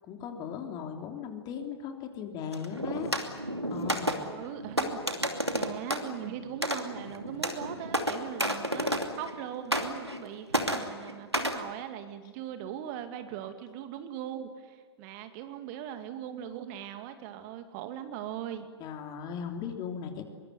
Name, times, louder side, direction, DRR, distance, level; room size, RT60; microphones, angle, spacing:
voice 1, 0.0-3.1 3.7-4.2 18.8-20.2, left 7 dB, 30° left, 4 dB, 3.3 m, -37 dB
sound 1, 2.5-9.4 9.7-10.3 10.5-11.6, equal, 90° right, 2.7 m, -32 dB
voice 2, 4.1-5.0 5.5-18.7, right 10 dB, 40° right, 8 dB, 2.3 m, -40 dB
23.5 x 23.0 x 9.7 m, 1.5 s
figure-of-eight pair, 100°, 14 cm